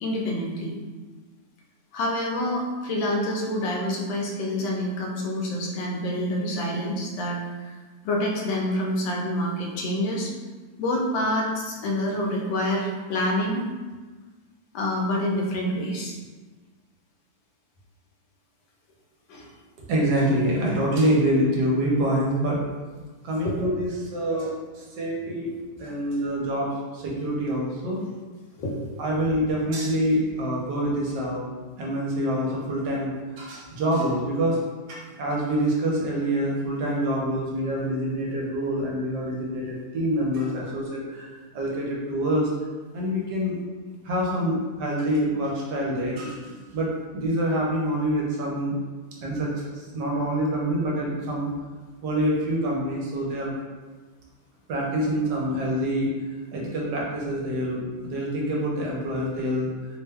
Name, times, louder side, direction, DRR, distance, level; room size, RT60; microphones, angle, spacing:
voice 1, 0.0-0.7 1.9-7.7 8.0-10.3 10.8-13.7 14.7-16.2 19.3-19.5 23.4-23.6 28.6-28.9, left 1 dB, 80° left, -1 dB, 1.4 m, -27 dB
voice 2, 19.9-22.6 23.2-28.0 29.0-31.4 31.8-34.6 34.9-42.5 42.9-43.6 44.0-48.8 49.2-51.5 52.0-53.5 54.7-56.1 56.5-59.7, equal, 75° right, -3 dB, 1.2 m, -26 dB
3.3 x 2.1 x 3.3 m, 1.3 s
omnidirectional pair, 2.1 m